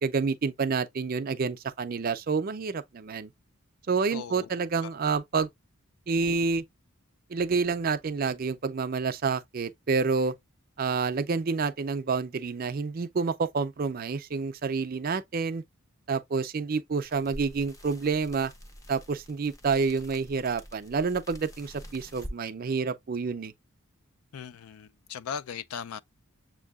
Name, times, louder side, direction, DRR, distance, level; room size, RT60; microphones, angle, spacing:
voice 1, 0.0-3.3 3.9-5.5 6.1-6.6 7.3-10.3 10.8-15.6 16.1-18.5 18.9-23.5, right 4 dB, 40° right, 0.4 m, -28 dB
voice 2, 4.1-4.5 4.8-4.9 24.3-26.0, left 7 dB, 80° left, 0.4 m, -38 dB
sound 1, 17.0-22.4, equal, 15° left, 0.5 m, -46 dB
7.3 x 2.7 x 2.3 m
head